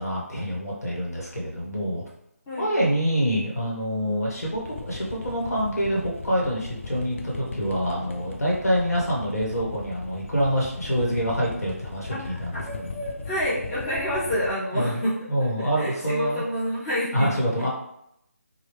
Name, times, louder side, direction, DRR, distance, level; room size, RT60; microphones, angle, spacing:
voice 1, 0.0-2.0 2.6-13.0 14.7-15.0 15.3-16.4 17.1-17.7, equal, 75° left, -3 dB, 1.2 m, -26 dB
sound 1, 4.4-14.5, left 3 dB, 50° left, 0.4 m, -38 dB
voice 2, 12.1-17.3 17.6-17.7, equal, 15° left, -8 dB, 0.7 m, -29 dB
3.1 x 2.2 x 3.3 m, 0.77 s
figure-of-eight pair, 160°, 8 cm